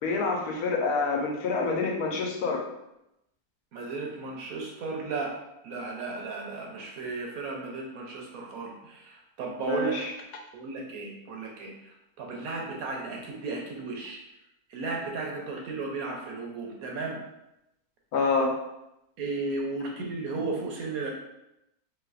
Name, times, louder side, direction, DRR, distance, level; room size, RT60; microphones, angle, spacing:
voice 1, 0.0-2.6 9.6-10.1 18.1-18.6, left 3 dB, 75° left, 1 dB, 1.1 m, -27 dB
voice 2, 3.7-5.4 5.6-10.0 10.5-14.2 14.7-17.2 19.2-21.1, right 3 dB, 70° right, 0 dB, 1.1 m, -34 dB
3.2 x 3.1 x 2.4 m, 0.86 s
omnidirectional pair, 1.6 m